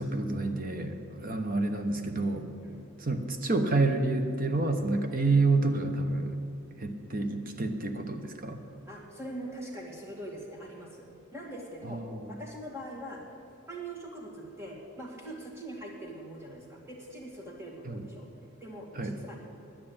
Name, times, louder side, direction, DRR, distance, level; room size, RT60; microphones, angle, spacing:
voice 1, 0.0-2.5 3.0-6.4 6.8-8.6 11.8-12.3 17.9-18.0 18.9-19.2, right 3 dB, 40° right, 6 dB, 0.9 m, -29 dB
voice 2, 8.9-11.1 11.3-12.0 12.3-13.2 13.7-18.3 18.6-19.4, right 1 dB, 10° right, -2 dB, 2.1 m, -42 dB
10.0 x 9.9 x 8.7 m, 2.6 s
head